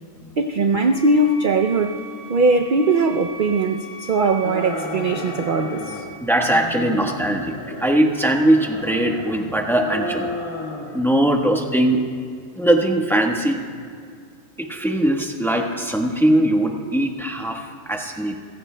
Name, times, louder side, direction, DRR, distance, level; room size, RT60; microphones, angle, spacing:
voice 1, 0.4-2.0 2.3-6.0, right 3 dB, 60° right, 5 dB, 0.5 m, -20 dB
sound 1, 0.9-6.0, right 1 dB, 50° left, 4.4 m, -39 dB
sound 2, 4.4-6.1 6.5-8.0 8.3-9.4 9.8-11.0 11.3-12.0, left 1 dB, 20° left, 1.5 m, -32 dB
voice 2, 6.2-10.3 10.9-12.0 12.5-13.6 14.6-18.3, right 1 dB, ahead, 2 dB, 1.0 m, -20 dB
30.0 x 16.0 x 2.2 m, 2.2 s
omnidirectional pair, 1.5 m